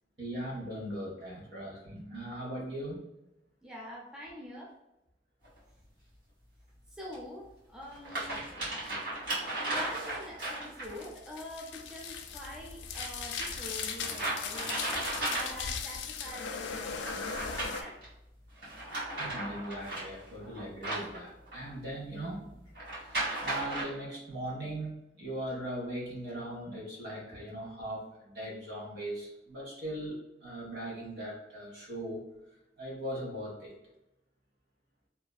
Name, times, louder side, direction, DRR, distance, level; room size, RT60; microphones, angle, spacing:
voice 1, 0.2-3.0 19.2-22.6 23.0-32.2 32.8-33.7, right 1 dB, 65° right, -3 dB, 1.0 m, -39 dB
voice 2, 3.6-4.7 6.9-8.4 9.6-17.4 17.7-18.0 27.3-27.4, left 1 dB, 5° right, -4 dB, 0.4 m, -45 dB
sound 1, 5.4-5.5 7.1-7.2 7.8-11.0 12.9-15.8 16.9-18.1 18.6-21.7 22.7-23.8, right 2 dB, 85° right, 1.4 m, -36 dB
sound 2, 10.8-17.8, left 6 dB, 90° left, 0.3 m, -38 dB
2.7 x 2.4 x 2.2 m, 0.91 s
head